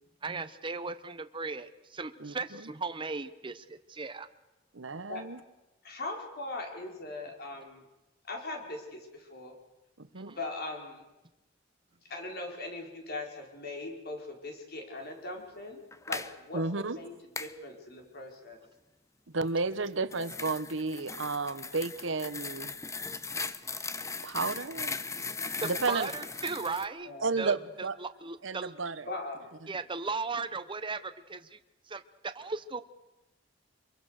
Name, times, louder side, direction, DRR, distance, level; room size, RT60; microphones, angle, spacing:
voice 1, 0.2-4.3 10.2-10.4 25.6-27.1 27.4-27.6 28.0-28.7 29.7-31.6 31.9-32.8, right 4 dB, 25° right, 10 dB, 0.9 m, -36 dB
voice 2, 2.2-2.7 4.7-5.4 10.0-10.3 16.5-17.0 19.3-22.7 24.2-24.9 25.6-26.1 27.2-28.0 28.4-29.1 29.7-29.8, right 3 dB, 80° right, 14 dB, 1.1 m, -32 dB
voice 3, 5.8-7.8 8.2-9.5 10.4-11.0 12.1-17.1 17.4-18.6 27.0-27.5 29.1-29.4, left 2 dB, 55° left, 2 dB, 4.7 m, -40 dB
sound 1, 15.9-16.3 17.4-17.6 19.7-26.9, left 4 dB, 15° left, 0.8 m, -38 dB
25.0 x 23.0 x 6.6 m, 1.0 s
head